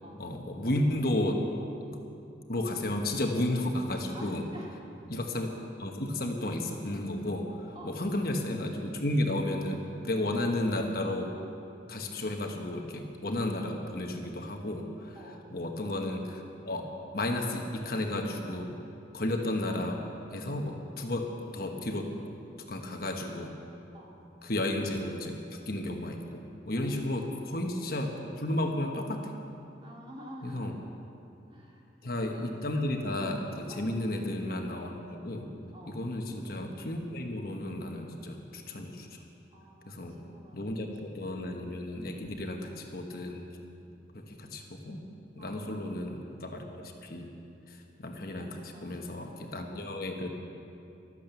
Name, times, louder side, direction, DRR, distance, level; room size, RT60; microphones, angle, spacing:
voice 1, 0.2-1.4 2.5-4.4 5.1-5.5 5.8-11.3 11.9-15.2 15.5-16.9 17.1-18.7 19.1-20.1 20.3-22.4 22.7-23.5 24.4-29.3 30.4-30.7 32.0-35.5 35.9-39.2 39.9-40.1 40.5-43.4 44.1-45.0 45.4-47.3 47.7-50.3, left 1 dB, 50° left, 3 dB, 1.2 m, -33 dB
voice 2, 4.1-4.7 7.7-8.0 10.2-10.4 15.1-15.5 23.9-24.2 26.9-27.8 29.8-30.8 31.5-32.4 33.7-33.9 35.7-36.1 39.5-40.9 41.1-41.3 42.0-42.3 45.4-45.6 48.4-50.0, equal, 30° right, -3 dB, 2.6 m, -50 dB
15.0 x 12.5 x 6.9 m, 2.7 s
head